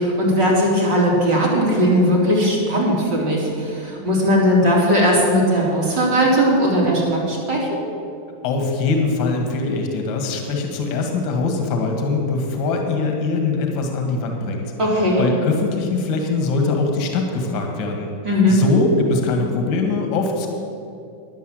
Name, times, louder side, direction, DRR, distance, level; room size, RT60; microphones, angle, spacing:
voice 1, 0.0-7.8 14.8-15.2 18.2-18.6, equal, 35° right, -4 dB, 3.7 m, -18 dB
voice 2, 8.4-18.1 18.5-20.5, left 3 dB, 45° left, 3 dB, 1.7 m, -22 dB
11.0 x 8.3 x 7.8 m, 2.5 s
supercardioid pair, 155°, 0 cm